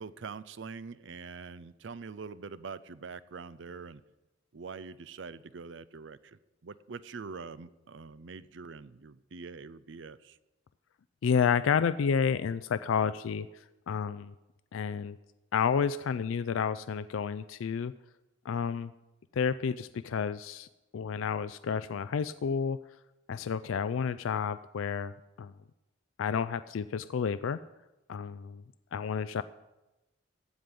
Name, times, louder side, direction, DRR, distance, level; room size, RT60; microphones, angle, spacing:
voice 1, 0.0-4.0 4.5-10.4, right 5 dB, 65° right, 16 dB, 0.5 m, -44 dB
voice 2, 11.2-13.5 13.9-14.3 14.7-15.2 15.5-17.9 18.5-18.9 19.3-20.7 20.9-22.8 23.3-25.5 26.2-27.6 28.1-28.6 28.9-29.4, left 6 dB, 75° left, 14 dB, 0.4 m, -30 dB
15.0 x 5.2 x 9.7 m, 1.0 s
head